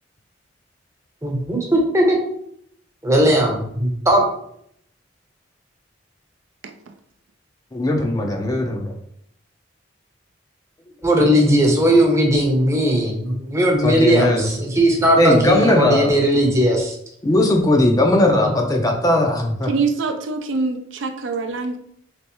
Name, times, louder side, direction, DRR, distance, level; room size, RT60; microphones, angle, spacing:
voice 1, 1.2-2.2 3.0-4.2 11.0-17.0 18.1-18.5, equal, 15° right, 0 dB, 0.7 m, -18 dB
voice 2, 7.7-8.9 13.8-14.5 15.2-16.1 17.2-19.7, left 1 dB, 20° left, 2 dB, 0.4 m, -18 dB
voice 3, 19.7-21.8, right 4 dB, 70° right, 5 dB, 0.4 m, -24 dB
3.3 x 3.1 x 3.0 m, 0.70 s
head